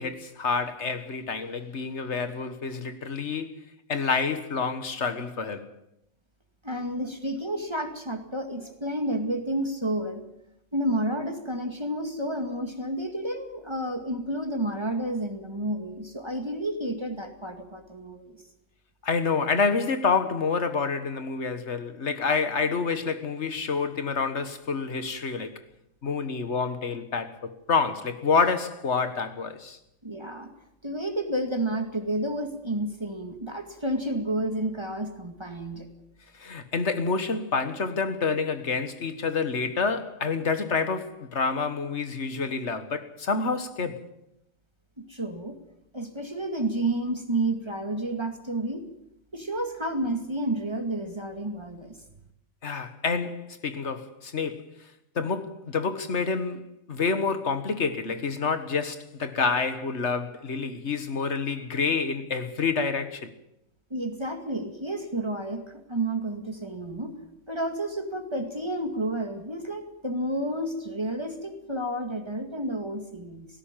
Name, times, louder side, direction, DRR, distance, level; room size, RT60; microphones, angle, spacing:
voice 1, 0.0-5.7 19.0-25.5 26.0-29.8 36.4-44.0 52.6-54.7 55.2-63.3, left 5 dB, 65° left, 1.8 m, -28 dB
voice 2, 6.6-10.2 10.7-18.4 30.0-30.5 30.8-35.9 45.0-45.6 45.9-48.8 49.3-51.9 63.9-67.2 67.5-73.5, right 1 dB, 20° right, 2.2 m, -30 dB
18.0 x 16.0 x 9.0 m
omnidirectional pair, 1.3 m